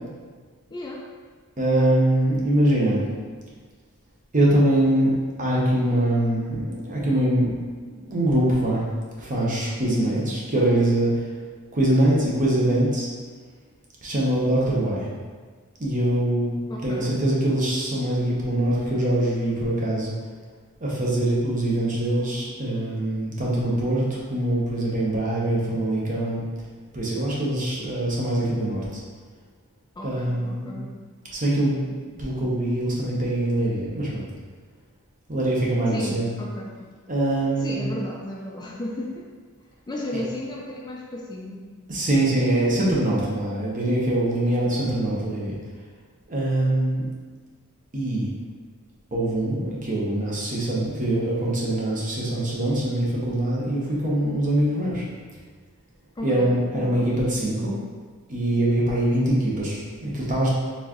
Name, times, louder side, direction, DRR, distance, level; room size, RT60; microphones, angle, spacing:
voice 1, 0.7-1.1 9.9-10.2 16.7-17.2 30.0-30.9 35.9-36.8 37.6-39.3 39.9-41.6 56.2-57.1, left 1 dB, 20° left, -2 dB, 0.4 m, -34 dB
voice 2, 1.6-3.0 4.3-5.1 5.4-7.6 7.9-8.8 9.2-11.2 11.7-13.1 14.0-15.1 15.8-20.1 20.8-26.4 26.9-29.0 30.0-30.8 31.3-34.2 35.3-36.3 37.1-37.9 41.9-45.6 46.3-47.1 47.9-48.3 49.1-55.0 56.2-57.7 58.3-60.5, right 1 dB, 40° right, -5 dB, 1.0 m, -23 dB
4.4 x 3.6 x 3.0 m, 1.5 s
head